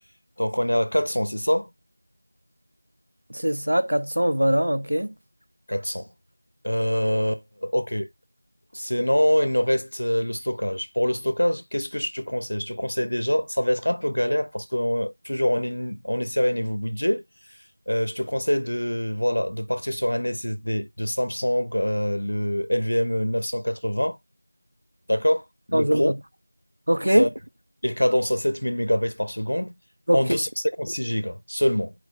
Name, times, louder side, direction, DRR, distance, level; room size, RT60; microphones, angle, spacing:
voice 1, 0.4-1.7 5.7-6.1 6.6-8.1 8.7-17.2 17.9-24.2 25.1-26.1 27.2-27.3 27.8-29.7 30.1-30.5 30.8-31.9, equal, 75° left, 0.9 m, -25 dB
voice 2, 3.3-5.1 25.7-26.1 26.9-27.3 30.1-30.4, equal, 70° right, 0.8 m, -22 dB
6.0 x 4.7 x 3.6 m
figure-of-eight pair, 175°, 0 cm